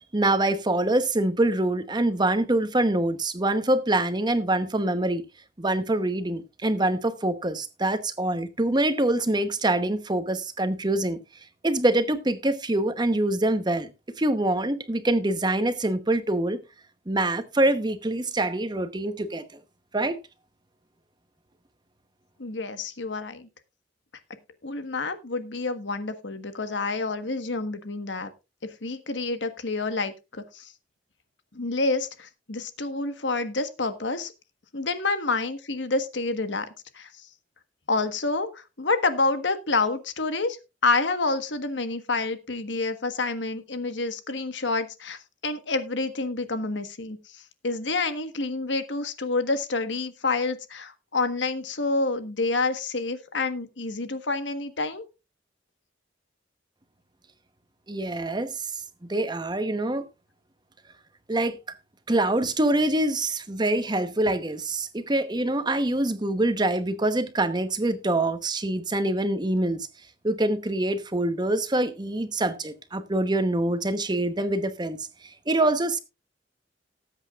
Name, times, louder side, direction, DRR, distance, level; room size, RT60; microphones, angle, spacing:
voice 1, 0.1-5.2 5.6-11.2 11.6-13.9 14.2-16.6 17.1-19.4 19.9-20.2 57.9-58.6 59.1-60.0 61.3-61.6 62.1-69.9 70.2-75.0 75.5-76.0, right 1 dB, 25° right, 1.0 m, -25 dB
voice 2, 22.4-23.5 24.6-28.3 28.8-30.7 31.5-34.3 34.7-36.7 36.9-37.3 37.9-40.6 40.8-55.0, left 3 dB, 90° left, 1.4 m, -28 dB
19.0 x 8.2 x 2.4 m
head